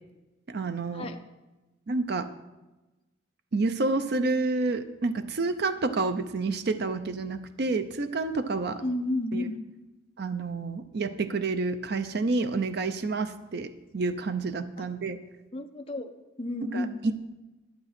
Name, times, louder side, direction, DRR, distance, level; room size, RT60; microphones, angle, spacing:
voice 1, 0.5-1.1 1.9-2.3 3.5-8.8 9.3-9.5 10.2-15.2 16.7-17.1, right 3 dB, 50° right, 10 dB, 0.5 m, -29 dB
voice 2, 8.8-9.6 14.8-14.9 15.5-16.1 16.4-17.0, left 1 dB, 25° left, 3 dB, 0.7 m, -31 dB
11.5 x 8.6 x 4.3 m, 1.1 s
head